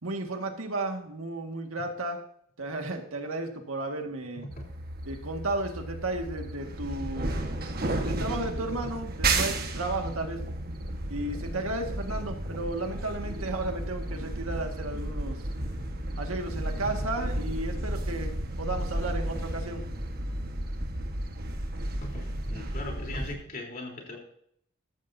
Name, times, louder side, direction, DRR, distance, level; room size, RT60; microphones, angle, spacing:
voice 1, 0.0-2.2 2.6-4.5 5.1-7.4 8.0-10.4 11.1-15.4 16.2-19.8, right 2 dB, 85° right, 4 dB, 1.9 m, -33 dB
sound 1, 4.5-23.4, right 1 dB, 45° right, 1.5 m, -33 dB
voice 2, 22.0-24.2, left 1 dB, 45° left, 0 dB, 3.7 m, -39 dB
14.0 x 13.5 x 2.8 m, 0.69 s
head